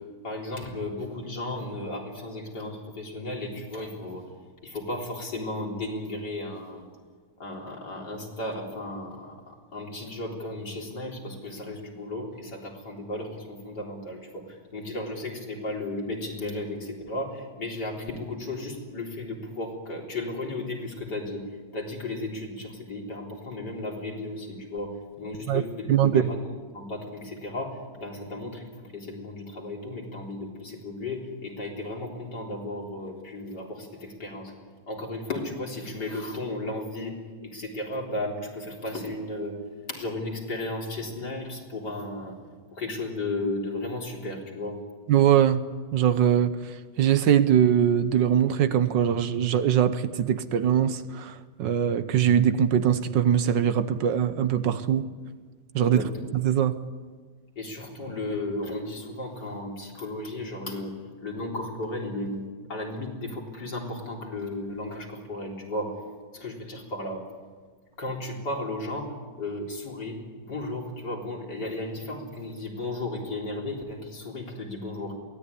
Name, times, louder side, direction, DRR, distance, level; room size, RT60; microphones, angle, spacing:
voice 1, 0.2-4.3 4.6-6.9 7.4-21.4 21.7-26.4 26.7-34.5 34.9-39.6 39.9-42.4 42.7-44.8 55.8-56.1 57.6-60.9 61.2-62.4 62.7-65.9 66.3-67.2 68.0-75.2, left 2 dB, 60° left, 4.4 m, -34 dB
voice 2, 25.9-26.2 45.1-45.6 45.9-55.1 55.7-56.8, right 9 dB, 70° right, 1.6 m, -22 dB
23.0 x 17.0 x 9.9 m
omnidirectional pair, 2.1 m